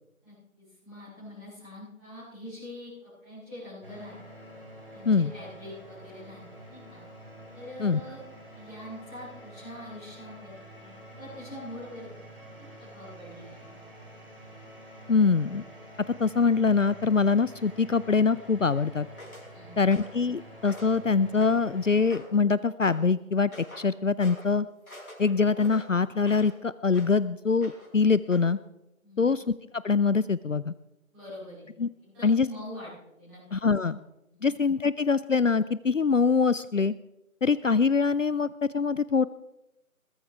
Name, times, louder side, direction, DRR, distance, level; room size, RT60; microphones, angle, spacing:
voice 1, 0.2-2.9 3.2-4.3 4.9-6.4 6.7-7.0 7.5-8.2 8.5-12.0 12.5-13.7 19.5-19.9 29.0-29.3 31.1-31.6 32.0-32.9 33.2-33.4 33.9-34.0, left 1 dB, ahead, -18 dB, 2.7 m, -44 dB
sound 1, 3.8-22.2, right 1 dB, 40° right, 3.3 m, -48 dB
voice 2, 15.1-15.6 16.2-19.1 19.8-23.5 23.8-24.7 25.2-28.6 29.2-29.4 29.7-30.7 31.8-31.9 32.2-32.5 33.5-34.0 34.4-36.9 37.4-38.5 38.7-39.3, left 5 dB, 65° left, 17 dB, 0.5 m, -24 dB
sound 2, 19.2-19.5 19.9-20.2 20.6-21.0 21.4-21.7 22.1-22.4 22.8-23.0 23.5-23.9 24.2-24.5 24.9-26.6 26.9-27.2 27.6-28.0 28.3-28.5, left 1 dB, 85° left, 5.9 m, -46 dB
21.5 x 15.5 x 3.4 m, 0.90 s
figure-of-eight pair, 170°, 42 cm